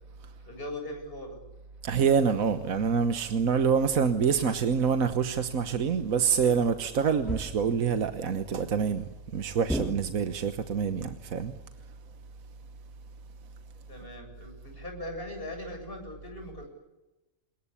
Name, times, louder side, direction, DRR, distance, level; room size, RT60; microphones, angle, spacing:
voice 1, 0.4-1.4 13.9-16.7, left 1 dB, 40° left, 7.7 m, -40 dB
voice 2, 1.8-9.0 9.3-11.5, right 6 dB, 75° right, 1.6 m, -26 dB
sound 1, 7.3-7.9 9.7-10.5, right 1 dB, ahead, 1.8 m, -34 dB
27.0 x 21.0 x 8.5 m
omnidirectional pair, 1.5 m